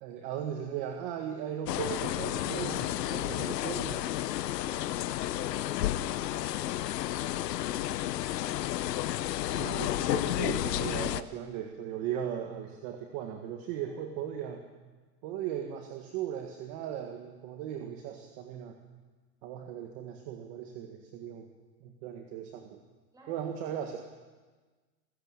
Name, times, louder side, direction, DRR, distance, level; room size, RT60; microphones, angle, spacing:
voice 1, 0.0-4.0 9.5-14.6 15.2-18.8 19.4-21.5 21.8-22.8 23.3-24.0, right 9 dB, 30° right, 4 dB, 1.7 m, -37 dB
sound 1, 1.7-11.2, left 14 dB, 80° left, 1.1 m, -31 dB
voice 2, 4.5-4.9 5.3-8.4 13.9-14.0 23.1-23.4, right 2 dB, 10° right, -2 dB, 6.7 m, -53 dB
27.0 x 14.5 x 8.9 m, 1.3 s
supercardioid pair, 175°, 48 cm